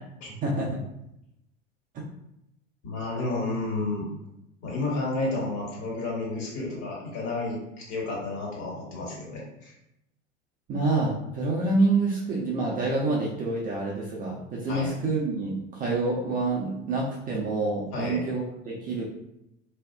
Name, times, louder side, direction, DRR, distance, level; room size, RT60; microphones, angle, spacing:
voice 1, 0.4-0.8 10.7-19.0, right 3 dB, 25° right, -4 dB, 0.4 m, -27 dB
voice 2, 2.8-4.1 4.6-9.7 14.7-15.0 17.9-18.2, left 2 dB, 50° left, -3 dB, 1.3 m, -31 dB
2.7 x 2.4 x 2.2 m, 0.83 s
hypercardioid pair, 90°, 38 cm